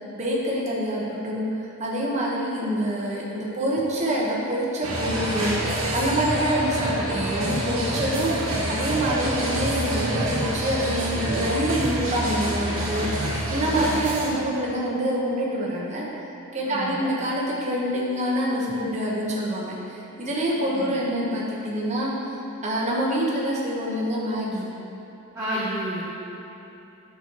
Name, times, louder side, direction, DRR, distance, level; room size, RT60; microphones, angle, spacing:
voice 1, 0.1-5.6 5.9-16.1 16.5-22.3 22.6-24.7, right 1 dB, 30° right, -5 dB, 1.2 m, -26 dB
sound 1, 4.8-14.3, right 1 dB, 75° right, 1.6 m, -27 dB
voice 2, 16.6-17.1 20.7-20.9 25.3-26.0, equal, 15° right, -10 dB, 1.0 m, -30 dB
9.8 x 6.4 x 3.1 m, 3.0 s
head